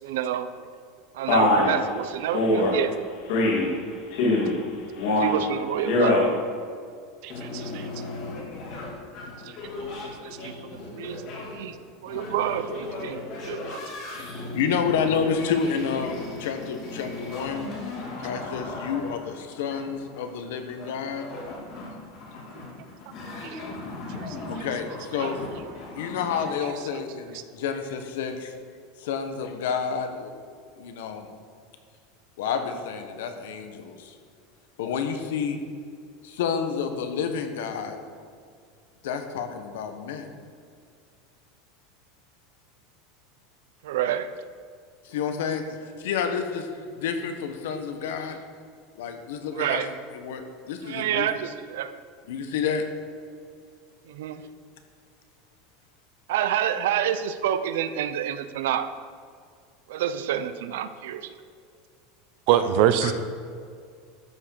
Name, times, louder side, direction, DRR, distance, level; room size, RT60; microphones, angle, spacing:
voice 1, 0.0-0.5 1.1-2.9 5.1-6.2 10.2-11.2 11.5-11.7 12.0-13.8 25.2-25.3 43.8-44.4 49.5-49.9 50.8-51.9 54.1-54.5 56.3-58.9 59.9-61.3, right 10 dB, 85° right, 12 dB, 0.7 m, -28 dB
Male speech man speaking, 1.3-1.7 2.3-2.7 3.3-3.7 4.1-4.6 5.0-5.4 5.8-6.3, left 2 dB, 60° left, 3.4 m, -21 dB
voice 2, 7.2-7.9 23.5-23.6 62.5-63.1, right 10 dB, 50° right, 11 dB, 0.7 m, -22 dB
sound 1, 7.3-26.4, left 2 dB, 40° left, 3.1 m, -37 dB
voice 3, 14.4-17.7 18.2-21.3 24.5-25.5 25.9-28.5 29.0-31.3 32.4-34.2 34.8-35.6 36.2-38.0 39.0-40.3 45.0-46.7 46.9-48.4 48.9-50.4 50.7-51.3 52.3-52.9 62.5-63.1, left 6 dB, 80° left, 7 dB, 1.4 m, -30 dB
13.0 x 6.2 x 6.6 m, 2.2 s
supercardioid pair, 170°, 0 cm